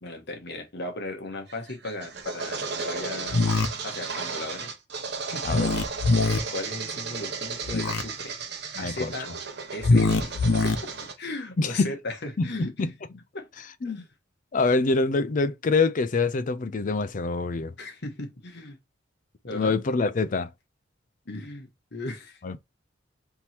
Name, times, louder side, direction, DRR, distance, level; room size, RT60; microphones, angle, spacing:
voice 1, 0.0-3.4 3.8-4.7 5.3-5.8 6.5-8.4 8.8-9.3 9.7-10.3 10.6-12.7 13.3-13.5 13.8-14.1 17.8-18.8 19.4-19.8 20.2-20.3 21.3-22.4, left 2 dB, 60° left, 1.3 m, -37 dB
sound 1, 1.5-11.1, right 5 dB, 60° right, 0.9 m, -35 dB
sound 2, 3.3-3.7 5.4-6.4 7.6-8.0 9.8-10.7, left 3 dB, 90° left, 0.7 m, -22 dB
voice 2, 8.8-9.1 11.6-11.9 12.4-12.9 13.8-14.0 14.5-17.7 19.5-20.5 22.4-22.6, left 3 dB, 45° left, 0.5 m, -25 dB
3.6 x 2.9 x 4.3 m
head